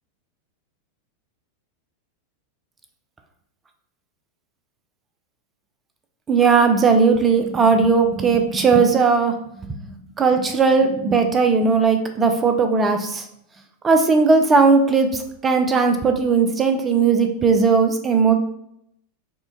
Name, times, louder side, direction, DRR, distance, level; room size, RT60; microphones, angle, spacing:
voice 1, 6.3-9.4 9.8-13.3 13.8-18.3, right 4 dB, 20° right, 5 dB, 0.4 m, -17 dB
4.3 x 2.2 x 2.6 m, 0.74 s
figure-of-eight pair, 90°, 0 cm